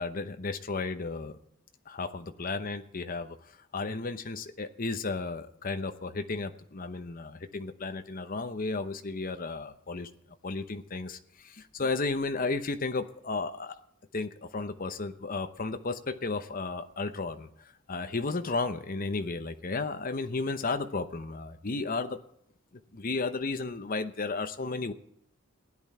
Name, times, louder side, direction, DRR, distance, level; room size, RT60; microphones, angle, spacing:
voice 1, 0.0-1.4 1.9-3.4 3.7-10.1 10.4-13.8 14.1-22.2 22.9-24.9, left 3 dB, 45° left, 10 dB, 0.8 m, -33 dB
16.0 x 10.5 x 4.4 m, 0.73 s
head